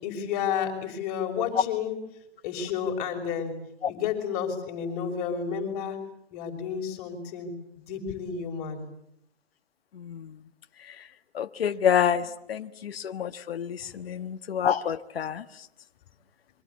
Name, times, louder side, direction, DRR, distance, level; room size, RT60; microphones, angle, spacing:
voice 1, 0.0-2.0 2.4-3.5 3.9-6.0 6.3-7.5 7.9-8.8 13.8-13.9, left 7 dB, 35° left, 4 dB, 6.0 m, -31 dB
voice 2, 11.4-12.2 12.5-13.7 14.1-15.4, left 8 dB, 65° left, 9 dB, 1.4 m, -27 dB
26.5 x 24.5 x 8.4 m, 0.75 s
hypercardioid pair, 145°, 32 cm